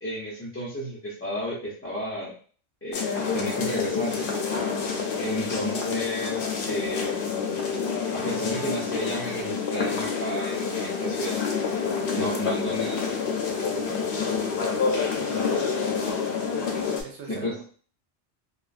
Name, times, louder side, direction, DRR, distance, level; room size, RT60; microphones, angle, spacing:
voice 1, 0.0-2.3 2.8-4.2 5.2-7.3 8.1-11.4 12.1-13.2 17.3-17.5, left 1 dB, 20° left, -7 dB, 0.4 m, -32 dB
sound 1, 2.9-17.0, left 5 dB, 60° left, 0.7 m, -28 dB
voice 2, 15.2-15.6 17.0-17.6, right 5 dB, 75° right, 1 dB, 0.9 m, -41 dB
2.7 x 2.4 x 2.4 m, 0.42 s
omnidirectional pair, 1.2 m